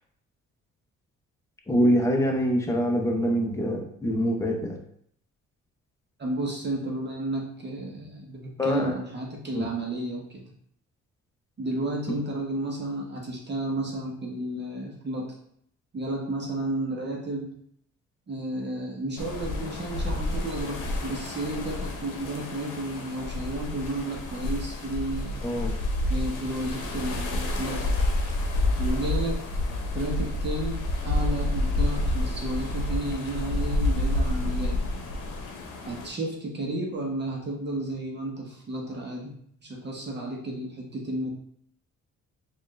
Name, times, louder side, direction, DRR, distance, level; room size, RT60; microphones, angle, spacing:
voice 1, 1.7-4.8 8.6-8.9 9.5-9.7 25.4-25.7, equal, 10° left, 1 dB, 0.7 m, -24 dB
voice 2, 6.2-10.5 11.6-15.3 15.9-17.6 18.3-25.4 26.1-27.9 28.8-29.4 29.9-34.8 35.8-41.3, right 1 dB, 35° right, -1 dB, 0.9 m, -32 dB
sound 1, 19.2-36.1, left 1 dB, 85° left, 0.8 m, -29 dB
4.2 x 2.5 x 3.2 m, 0.67 s
cardioid pair, 90°, 30 cm